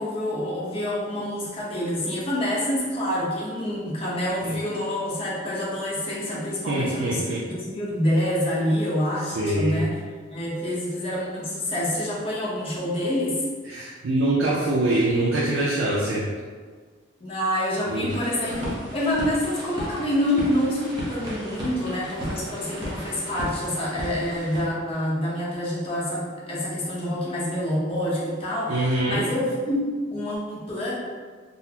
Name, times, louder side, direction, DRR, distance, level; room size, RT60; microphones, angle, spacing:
voice 1, 0.0-10.0 10.3-13.4 17.2-29.8 30.1-30.9, left 1 dB, 30° left, -6 dB, 0.7 m, -27 dB
voice 2, 6.7-7.4 9.4-9.8 13.7-16.3 17.9-18.2 28.7-29.2, right 1 dB, 80° right, -5 dB, 0.5 m, -24 dB
sound 1, 18.1-24.6, equal, 25° right, 0.7 m, -35 dB
3.9 x 2.0 x 2.8 m, 1.5 s
head